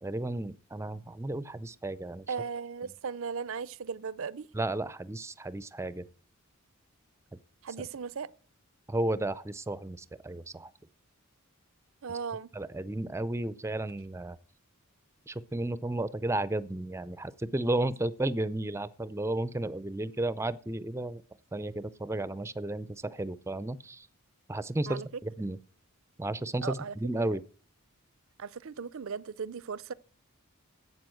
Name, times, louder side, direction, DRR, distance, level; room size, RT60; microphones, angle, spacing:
voice 1, 0.0-2.3 4.5-6.1 8.9-10.7 12.5-14.4 15.3-21.2 21.5-24.1 24.5-25.6 26.2-27.4, right 2 dB, 10° right, 0.5 m, -33 dB
voice 2, 2.3-4.5 7.6-8.3 12.0-12.5 24.9-25.1 26.6-26.9 28.4-29.9, right 6 dB, 60° right, 0.5 m, -37 dB
12.0 x 8.4 x 7.7 m
head